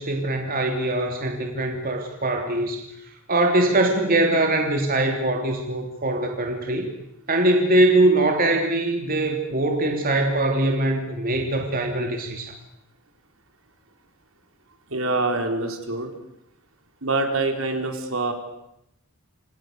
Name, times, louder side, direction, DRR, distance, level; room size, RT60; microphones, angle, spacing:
voice 1, 0.0-2.8 3.3-6.9 7.3-12.5, right 2 dB, 45° right, 3 dB, 3.1 m, -22 dB
voice 2, 14.9-16.1 17.0-18.3, right 2 dB, 70° right, 4 dB, 4.5 m, -25 dB
28.5 x 28.0 x 6.8 m, 0.81 s
head